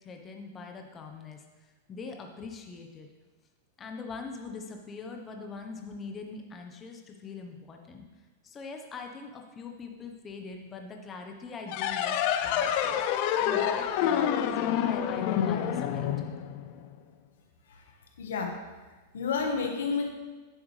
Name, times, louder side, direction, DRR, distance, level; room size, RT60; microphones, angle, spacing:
voice 1, 0.0-1.4 1.9-3.1 3.8-8.1 8.4-13.0 13.4-16.1, left 4 dB, 25° left, 3 dB, 0.9 m, -42 dB
sound 1, 11.7-16.9, left 9 dB, 55° left, 0.6 m, -28 dB
voice 2, 18.2-18.6 19.1-20.1, left 5 dB, 85° left, 3 dB, 1.3 m, -30 dB
10.0 x 7.1 x 3.3 m, 1.3 s
hypercardioid pair, 130°, 0 cm